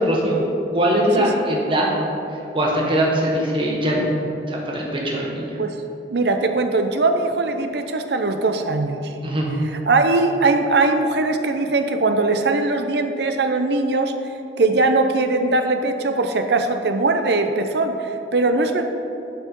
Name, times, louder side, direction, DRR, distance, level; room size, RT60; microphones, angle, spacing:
voice 1, 0.1-0.4 0.7-1.9 2.5-4.0 4.5-5.5 9.2-9.5, right 1 dB, 30° right, -3 dB, 1.3 m, -21 dB
voice 2, 6.1-9.0 9.9-14.1 14.6-18.8, right 3 dB, 60° right, 6 dB, 0.6 m, -20 dB
11.5 x 4.8 x 4.5 m, 2.9 s
head